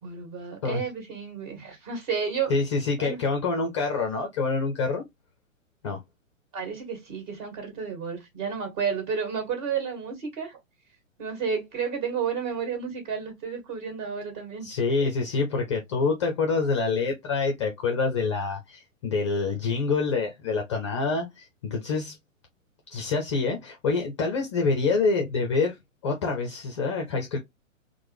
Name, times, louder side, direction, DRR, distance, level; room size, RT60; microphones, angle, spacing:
voice 1, 0.0-2.5 3.0-3.2 6.5-10.6 11.2-14.7, right 6 dB, 35° right, 1.7 m, -31 dB
voice 2, 2.5-5.0 5.8-6.0 14.6-22.2 22.9-25.7 26.0-27.4, left 4 dB, 25° left, 0.4 m, -26 dB
4.4 x 2.1 x 3.2 m
figure-of-eight pair, 115°, 40 cm